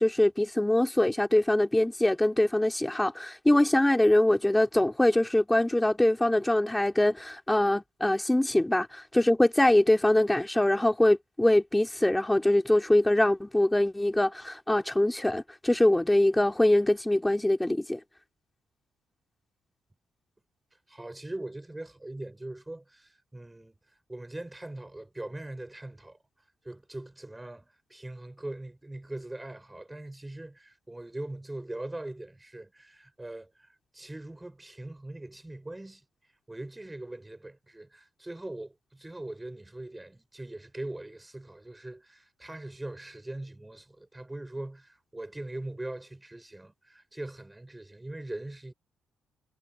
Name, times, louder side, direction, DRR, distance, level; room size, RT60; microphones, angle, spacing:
voice 1, 0.0-18.0, left 1 dB, 10° left, 2.8 m, -23 dB
voice 2, 20.9-23.8 24.1-26.2 26.6-36.0 36.5-48.7, right 1 dB, 10° right, 6.0 m, -41 dB
cardioid pair, 90°, 0 cm